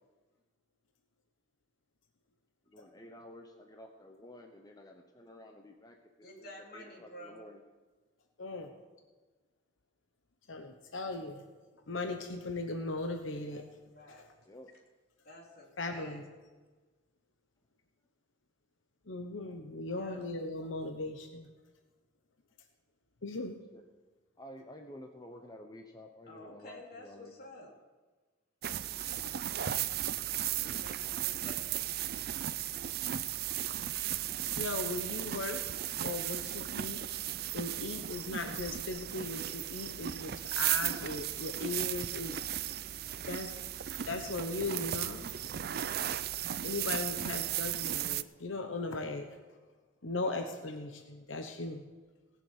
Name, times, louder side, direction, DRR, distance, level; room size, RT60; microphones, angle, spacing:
voice 1, 2.7-7.6 14.5-14.7 19.9-20.3 23.7-23.8 24.4-27.3 46.0-46.3, left 1 dB, 20° left, 0.9 m, -52 dB
voice 2, 6.2-7.4 13.5-13.6 13.9-14.2 15.2-16.2 19.9-20.3 26.3-27.7 30.3-31.7 50.2-50.5, left 1 dB, 50° left, 3.7 m, -51 dB
voice 3, 8.4-8.7 10.5-11.4 11.9-13.6 15.8-16.2 19.1-21.5 23.2-23.6 34.6-35.6 36.0-37.1 37.5-42.4 43.3-43.6 44.1-45.3 46.6-49.3 50.0-51.8, left 3 dB, 85° left, 1.1 m, -38 dB
sound 1, 28.6-48.2, right 11 dB, 55° right, 0.5 m, -36 dB
18.0 x 7.1 x 8.2 m
head